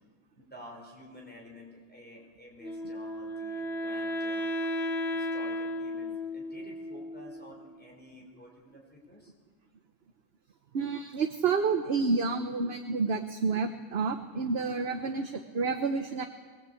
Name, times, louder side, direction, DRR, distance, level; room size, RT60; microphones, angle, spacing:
voice 1, 0.4-4.5 5.1-9.3, left 1 dB, 5° left, -2 dB, 5.2 m, -51 dB
Wind instrument woodwind instrument, 2.6-7.7, equal, 40° left, 1.3 m, -34 dB
voice 2, 10.7-16.2, right 4 dB, 45° right, 7 dB, 1.1 m, -29 dB
22.5 x 19.5 x 8.5 m, 1.5 s
omnidirectional pair, 1.5 m